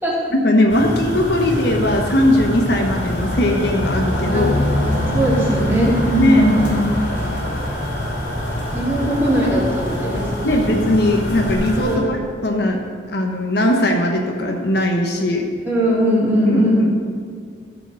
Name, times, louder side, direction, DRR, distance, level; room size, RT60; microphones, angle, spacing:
voice 1, 0.3-4.5 6.2-6.4 10.4-12.2 12.4-12.8 13.1-15.5 16.5-16.9, left 1 dB, 60° left, 2 dB, 1.0 m, -19 dB
sound 1, 0.7-12.0, left 1 dB, 85° left, 2.9 m, -23 dB
voice 2, 5.1-6.9 8.7-10.7 11.8-12.1 15.7-16.8, equal, 10° right, -7 dB, 2.8 m, -19 dB
14.5 x 5.0 x 6.3 m, 2.2 s
head